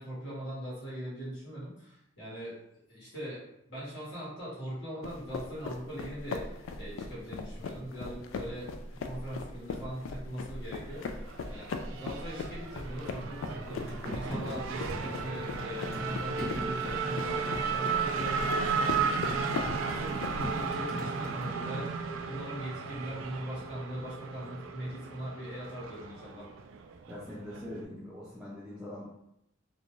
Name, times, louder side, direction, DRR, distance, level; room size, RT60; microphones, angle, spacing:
voice 1, 0.0-2.6 2.9-3.4 3.7-11.0 11.5-19.2 19.4-26.5, equal, 60° left, -7 dB, 1.2 m, -41 dB
sound 1, 5.0-20.7, left 4 dB, 80° left, 0.3 m, -39 dB
Race car auto racing / Accelerating revving vroom, 10.9-27.8, right 5 dB, 80° right, 0.3 m, -35 dB
sound 2, 13.9-21.5, left 1 dB, 30° left, 1.1 m, -40 dB
voice 2, 27.1-29.1, left 1 dB, 5° right, -7 dB, 0.4 m, -42 dB
2.5 x 2.2 x 3.0 m, 0.79 s
head